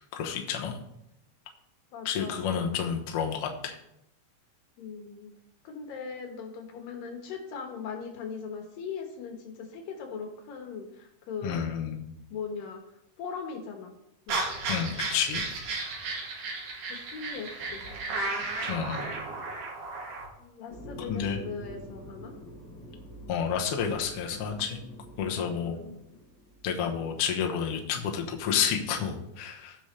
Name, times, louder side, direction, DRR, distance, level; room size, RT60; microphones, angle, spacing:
voice 1, 0.1-0.8 2.1-3.8 11.4-12.1 14.7-15.4 18.7-19.1 21.1-21.4 23.3-24.8 25.2-25.8 26.6-29.8, left 7 dB, 60° left, 2 dB, 1.6 m, -30 dB
voice 2, 1.9-2.6 4.8-5.3 5.6-11.7 12.3-13.9 14.3-14.5 16.9-17.8 20.4-22.3 25.6-26.0, left 5 dB, 85° left, 3 dB, 3.1 m, -39 dB
sound 1, 14.3-20.3, right 3 dB, 70° right, 3.1 m, -34 dB
sound 2, 20.7-26.7, equal, 30° left, 4.5 m, -46 dB
16.0 x 6.1 x 3.3 m, 0.82 s
omnidirectional pair, 3.9 m